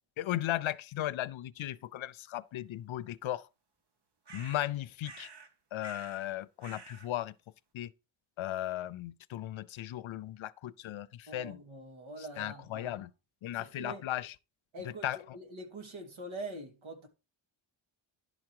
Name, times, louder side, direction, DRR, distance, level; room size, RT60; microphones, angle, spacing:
voice 1, 0.2-3.5 4.3-5.3 5.7-7.3 7.7-7.9 8.4-11.6 12.2-13.1 13.4-14.4 14.8-15.2, left 13 dB, 80° left, 0.6 m, -36 dB
sound 1, 4.3-4.7 5.0-5.5 5.8-6.3 6.6-7.1, right 4 dB, 55° right, 1.3 m, -50 dB
voice 2, 11.3-13.1 13.5-14.0 14.7-17.1, right 1 dB, 80° right, 2.3 m, -44 dB
11.0 x 4.8 x 4.6 m
wide cardioid pair, 125°, 47 cm